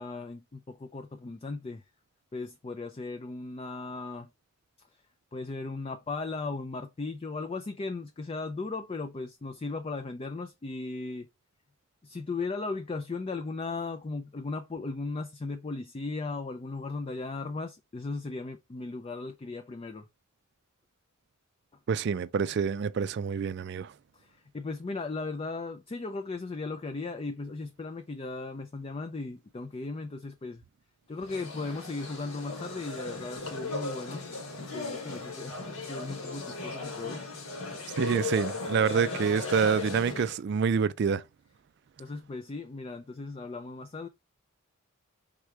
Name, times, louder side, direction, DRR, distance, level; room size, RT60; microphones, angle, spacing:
voice 1, 0.0-1.8 2.3-4.3 5.3-11.3 12.0-20.1 24.1-30.6 31.1-34.2 34.7-37.2 42.0-44.1, left 3 dB, 25° left, 0.3 m, -37 dB
voice 2, 21.9-23.9 38.0-41.2, right 6 dB, 50° right, 0.3 m, -27 dB
sound 1, 31.2-40.4, left 3 dB, 75° left, 1.7 m, -37 dB
4.7 x 3.6 x 3.1 m
head